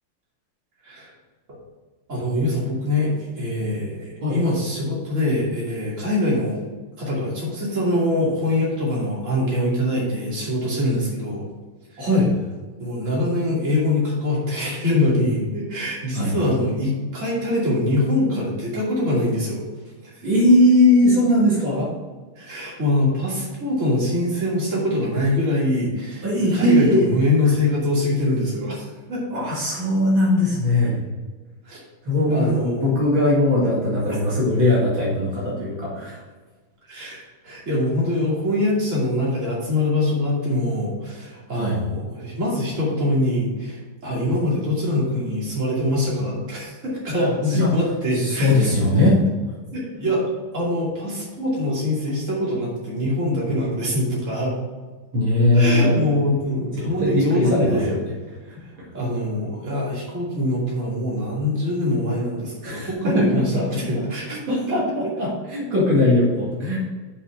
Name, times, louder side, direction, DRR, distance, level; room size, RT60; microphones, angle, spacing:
voice 1, 2.1-6.6 7.0-11.5 11.9-12.1 12.8-19.6 20.0-20.3 22.4-26.3 26.5-29.4 31.6-31.8 32.3-32.9 36.9-48.5 49.7-50.3 50.5-54.5 55.5-57.9 58.6-64.5 65.0-65.2, left 1 dB, 35° right, -6 dB, 3.0 m, -23 dB
voice 2, 12.0-12.3 16.1-16.3 20.2-21.9 26.2-27.1 29.3-31.0 32.0-36.2 41.5-41.8 47.5-47.7 48.1-49.2 55.1-56.0 56.7-58.0 62.6-63.6 64.3-66.8, left 1 dB, 65° right, -6 dB, 2.8 m, -19 dB
7.1 x 5.6 x 5.7 m, 1.4 s
omnidirectional pair, 2.4 m